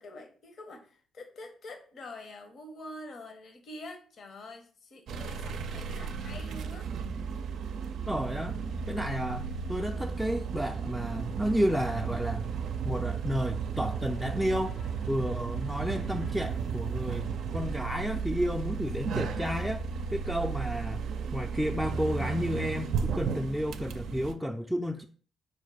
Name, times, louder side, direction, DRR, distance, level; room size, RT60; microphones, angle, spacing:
voice 1, 0.0-6.9, left 1 dB, 65° left, 5 dB, 0.9 m, -46 dB
sound 1, 5.1-24.3, right 6 dB, 75° right, 0.4 m, -34 dB
voice 2, 8.1-8.6 8.9-12.5 12.8-14.7 15.1-17.3 17.5-19.8 20.1-21.1 21.3-25.0, equal, ahead, 2 dB, 0.4 m, -31 dB
sound 2, 13.8-19.1, left 1 dB, 90° left, 1.0 m, -55 dB
5.0 x 2.2 x 4.8 m, 0.43 s
supercardioid pair, 65°, 0 cm